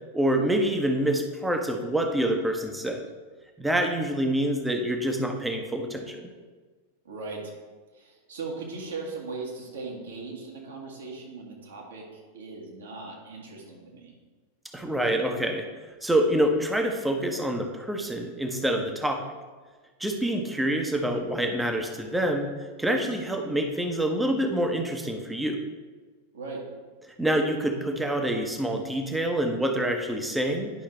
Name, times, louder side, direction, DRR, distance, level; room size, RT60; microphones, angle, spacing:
voice 1, 0.1-3.0 3.6-6.3 14.7-15.7 16.0-19.3 20.0-22.5 22.8-25.6 27.2-30.7, right 1 dB, 5° right, 3 dB, 0.9 m, -26 dB
voice 2, 7.1-7.4 7.9-14.1 26.3-26.6, right 3 dB, 65° right, -1 dB, 1.7 m, -38 dB
10.0 x 5.6 x 3.3 m, 1.4 s
figure-of-eight pair, 90°, 0 cm